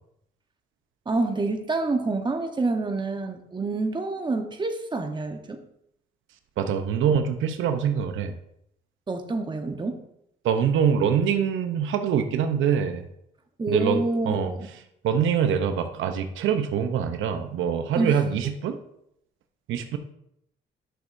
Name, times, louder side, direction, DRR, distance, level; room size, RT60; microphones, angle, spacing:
voice 1, 1.1-5.6 9.1-10.0 13.6-14.7 18.0-18.2, right 3 dB, 25° right, 5 dB, 1.0 m, -27 dB
voice 2, 6.6-8.3 10.4-13.0 13.7-14.5 15.0-18.8 19.7-20.0, right 7 dB, 80° right, 7 dB, 0.7 m, -24 dB
10.5 x 6.3 x 2.6 m, 0.77 s
cardioid pair, 90°, 20 cm